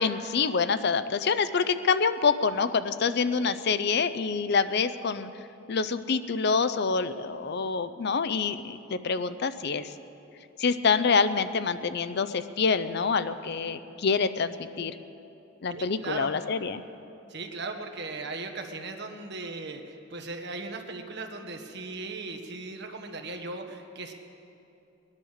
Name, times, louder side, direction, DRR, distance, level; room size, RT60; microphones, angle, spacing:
voice 1, 0.0-5.3 5.7-9.9 10.6-14.9 15.6-16.8, left 5 dB, 55° left, 12 dB, 0.5 m, -26 dB
voice 2, 15.7-16.3 17.3-24.1, right 3 dB, 55° right, 4 dB, 1.3 m, -38 dB
20.0 x 10.5 x 6.5 m, 2.8 s
head